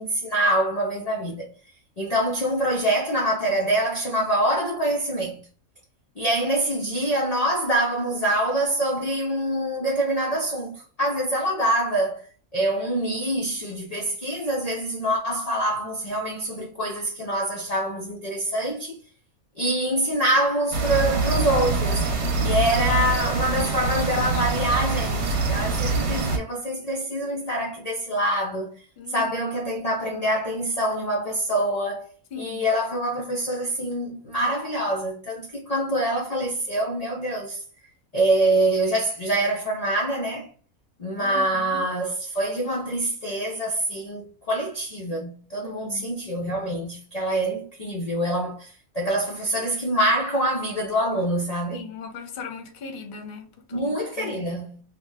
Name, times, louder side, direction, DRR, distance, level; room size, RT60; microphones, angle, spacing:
voice 1, 0.0-1.5 2.0-5.4 6.2-12.2 12.5-19.0 19.6-22.0 22.4-32.1 32.4-37.6 38.1-40.5 41.0-51.9 53.7-54.8, right 1 dB, 90° left, 0.3 m, -25 dB
sound 1, 20.7-26.4, right 3 dB, 55° right, 0.9 m, -24 dB
voice 2, 29.0-29.3 32.3-32.6 41.2-41.8 45.8-46.1 51.7-53.9 54.2-54.4, left 5 dB, 50° left, 0.7 m, -38 dB
2.7 x 2.1 x 3.3 m
omnidirectional pair, 1.5 m